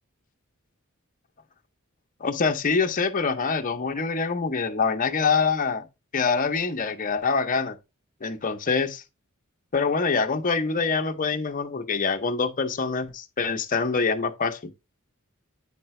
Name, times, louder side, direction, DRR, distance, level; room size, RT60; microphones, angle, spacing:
voice 1, 2.2-5.9 6.1-7.8 8.2-9.0 9.7-14.7, left 4 dB, 40° left, 0.7 m, -25 dB
8.8 x 5.2 x 3.1 m
head